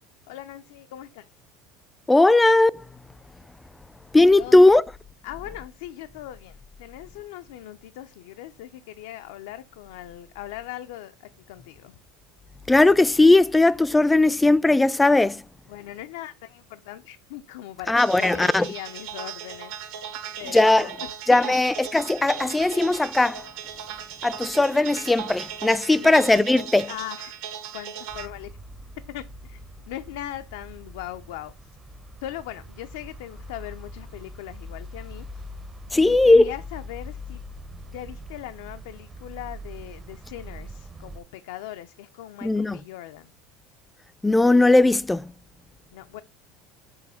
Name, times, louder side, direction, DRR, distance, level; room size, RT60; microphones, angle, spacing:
voice 1, 0.3-1.3 4.4-4.8 5.2-11.1 11.5-12.0 15.7-19.7 20.4-21.1 21.4-21.5 25.9-26.4 26.9-27.4 27.7-28.6 29.1-31.7 32.2-35.4 35.9-37.4 37.9-43.3 45.9-46.2, left 13 dB, 80° left, 0.4 m, -39 dB
voice 2, 2.1-2.8 4.1-4.8 12.7-15.4 17.9-18.7 20.5-20.9 21.3-23.4 24.2-26.9 35.9-36.5 42.4-42.8 44.2-45.3, left 2 dB, 10° left, 0.3 m, -18 dB
sound 1, 18.0-28.3, right 8 dB, 70° right, 1.3 m, -37 dB
sound 2, 28.1-41.2, left 1 dB, 25° right, 0.6 m, -42 dB
6.3 x 2.7 x 5.6 m
supercardioid pair, 110°, 0 cm